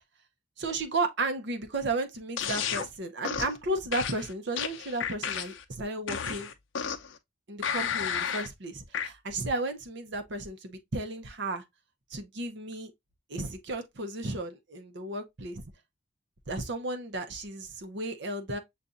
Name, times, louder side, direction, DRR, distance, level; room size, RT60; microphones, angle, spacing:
voice 1, 0.6-6.5 7.5-11.6 12.1-12.9 13.3-15.6 16.5-18.6, right 2 dB, 65° right, 0.8 m, -34 dB
sound 1, 2.4-2.9 3.2-3.6 3.9-5.6 6.1-7.1 7.6-8.5 8.9-9.1, left 7 dB, 85° left, 0.6 m, -32 dB
6.8 x 2.5 x 2.4 m
head